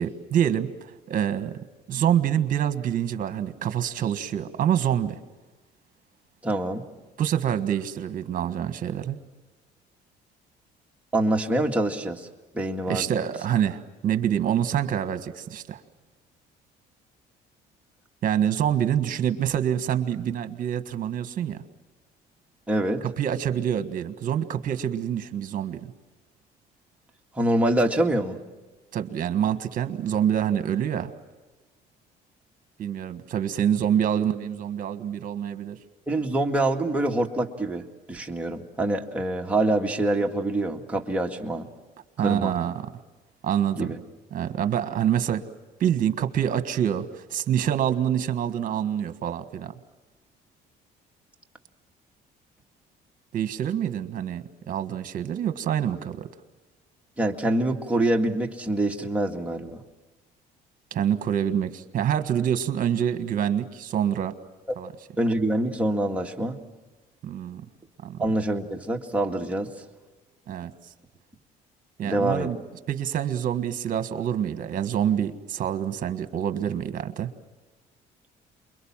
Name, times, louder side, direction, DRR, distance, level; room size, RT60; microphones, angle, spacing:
voice 1, 0.0-1.6 1.9-5.2 7.2-9.2 12.9-15.8 18.2-21.6 23.0-25.9 28.9-31.1 32.8-35.8 42.2-42.9 43.4-43.9 44.3-45.4 45.8-49.7 53.3-56.3 60.9-64.3 64.8-64.9 67.2-67.6 68.0-68.2 70.5-70.7 72.0-72.6 72.9-77.3, right 9 dB, 55° right, 10 dB, 1.6 m, -26 dB
voice 2, 6.4-6.8 11.1-12.3 12.5-13.1 22.7-23.0 27.4-28.4 36.1-41.7 42.2-42.5 43.8-44.0 57.2-59.8 65.2-66.6 68.2-69.7 72.0-72.5, right 1 dB, 10° right, 0 dB, 2.1 m, -25 dB
28.5 x 22.5 x 7.4 m, 1.2 s
cardioid pair, 110°, 17 cm